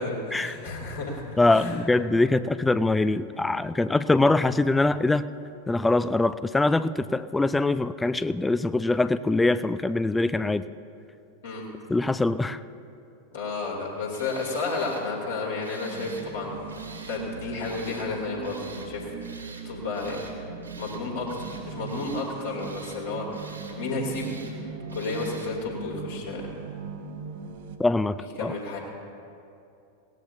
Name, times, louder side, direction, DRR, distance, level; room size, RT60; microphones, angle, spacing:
voice 1, 0.0-1.8 11.4-11.6 13.3-16.7 17.1-19.1 19.6-20.2 20.8-24.4 24.9-26.5 28.2-28.8, left 3 dB, 65° left, -3 dB, 2.7 m, -32 dB
voice 2, 1.4-5.3 5.7-10.6 11.9-12.6 27.8-28.5, left 2 dB, 10° left, 14 dB, 0.3 m, -23 dB
Tools, 14.1-15.0 15.6-16.3 16.7-17.2 17.6-18.1 18.4-18.9 19.2-19.7 19.9-20.3 20.6-21.0 21.3-22.3 22.6-23.0 23.3-23.8 24.1-24.5 24.9-25.5, right 4 dB, 80° right, 1.9 m, -46 dB
sound 1, 15.9-27.8, right 6 dB, 55° right, 1.1 m, -39 dB
21.0 x 17.0 x 2.7 m, 2.6 s
figure-of-eight pair, 90°, 0 cm